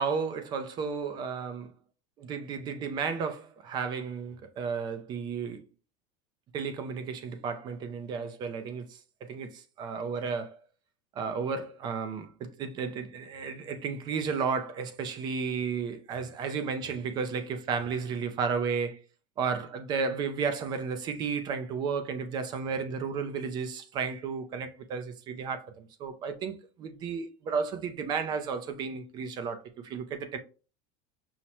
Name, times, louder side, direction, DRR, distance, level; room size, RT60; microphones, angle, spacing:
voice 1, 0.0-1.7 2.2-5.6 6.5-10.6 11.1-19.0 19.4-30.4, right 5 dB, 25° right, 0.3 m, -33 dB
5.5 x 2.1 x 2.9 m
cardioid pair, 175°, 17 cm